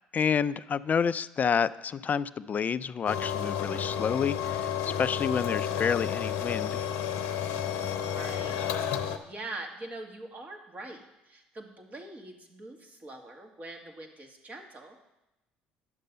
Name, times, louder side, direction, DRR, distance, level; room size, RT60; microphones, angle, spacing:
voice 1, 0.1-6.8, left 7 dB, 35° left, 16 dB, 0.4 m, -29 dB
sound 1, 3.1-9.2, left 9 dB, 70° left, 0.7 m, -31 dB
voice 2, 7.6-8.6 8.9-15.0, right 2 dB, 35° right, 2 dB, 2.0 m, -44 dB
10.5 x 6.6 x 5.3 m, 0.94 s
hypercardioid pair, 60°, 4 cm